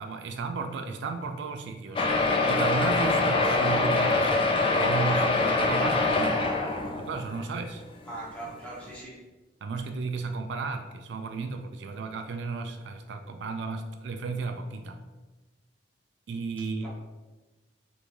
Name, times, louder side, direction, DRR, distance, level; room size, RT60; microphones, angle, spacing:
voice 1, 0.0-2.1 2.5-6.6 7.0-7.8 9.6-15.0 16.3-16.9, right 4 dB, 70° right, 6 dB, 0.3 m, -34 dB
sound 1, 2.0-7.4 8.1-8.2 8.4-8.5 8.9-9.0, left 3 dB, 30° left, 0.3 m, -24 dB
voice 2, 8.0-9.2 16.8-16.9, right 2 dB, 10° left, -8 dB, 1.2 m, -40 dB
3.4 x 3.2 x 2.5 m, 1.2 s
head